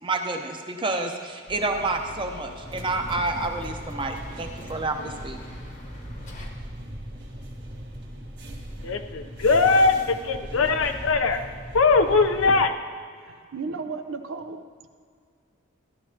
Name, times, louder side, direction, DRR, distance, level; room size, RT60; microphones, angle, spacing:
voice 1, 0.0-5.4, right 2 dB, 25° right, 4 dB, 0.8 m, -29 dB
sound 1, 1.5-6.5, left 1 dB, 40° left, 1.1 m, -43 dB
sound 2, 2.6-12.7, right 1 dB, 55° right, 1.7 m, -39 dB
voice 2, 8.8-11.4 11.7-12.7, left 4 dB, 75° left, 7 dB, 0.7 m, -20 dB
voice 3, 13.2-14.6, right 4 dB, 70° right, 8 dB, 0.6 m, -34 dB
14.0 x 11.0 x 2.8 m, 2.1 s
head